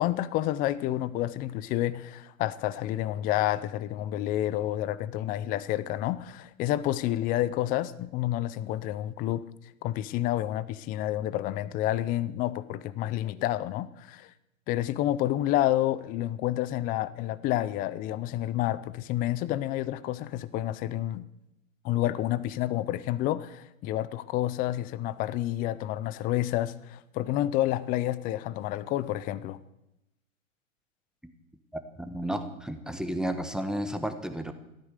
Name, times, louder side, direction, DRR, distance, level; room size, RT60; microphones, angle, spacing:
voice 1, 0.0-9.4 9.8-14.3 14.7-21.2 21.8-29.6, left 14 dB, 20° left, 16 dB, 0.5 m, -29 dB
voice 2, 31.7-34.5, right 1 dB, ahead, 8 dB, 1.1 m, -32 dB
15.0 x 13.0 x 6.6 m, 0.90 s
hypercardioid pair, 125°, 40 cm